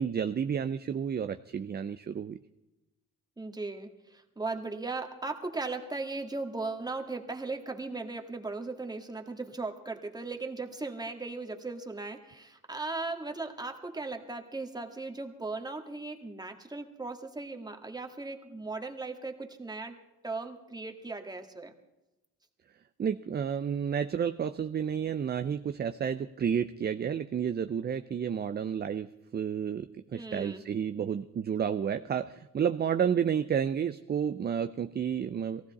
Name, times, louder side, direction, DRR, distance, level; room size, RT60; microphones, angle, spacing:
voice 1, 0.0-2.4 23.0-29.1 29.3-35.6, right 8 dB, 35° right, 9 dB, 0.5 m, -31 dB
voice 2, 3.4-20.0 20.2-21.7 30.1-30.6, right 3 dB, 15° right, 4 dB, 1.7 m, -37 dB
18.5 x 15.5 x 4.1 m, 0.95 s
cardioid pair, 90°, 30 cm